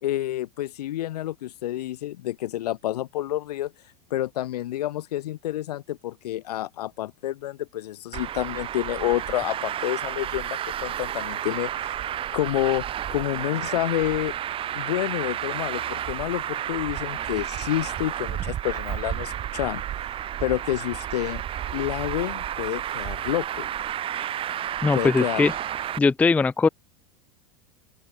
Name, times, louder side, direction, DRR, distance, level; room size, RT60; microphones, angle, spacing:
voice 1, 0.0-3.7 4.1-12.0 12.3-12.8 13.1-14.3 14.7-19.8 20.4-21.4 21.7-23.7 24.9-25.4, left 14 dB, 80° left, 3.2 m, -29 dB
Traffic noise roadway noise, 8.1-26.0, right 11 dB, 25° right, 0.7 m, -31 dB
voice 2, 24.8-25.5 26.0-26.7, left 4 dB, 5° left, 0.4 m, -20 dB
open air
supercardioid pair, 120°, 20 cm